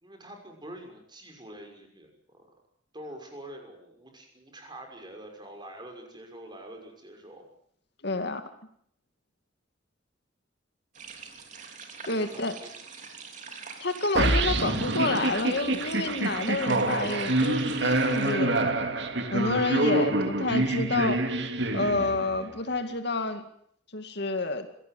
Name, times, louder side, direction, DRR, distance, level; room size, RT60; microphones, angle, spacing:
voice 1, 0.0-2.5 2.9-7.4 12.0-12.7, right 1 dB, 25° right, 3 dB, 6.1 m, -45 dB
voice 2, 8.0-8.4 12.0-12.6 13.8-18.8 19.3-21.4 21.7-23.5 23.9-24.7, left 2 dB, 60° left, 7 dB, 2.3 m, -29 dB
sound 1, 11.0-18.3, right 5 dB, 40° right, 3.2 m, -45 dB
sound 2, 14.2-22.4, right 2 dB, 65° right, 2.3 m, -26 dB
25.0 x 18.0 x 7.8 m, 0.67 s
head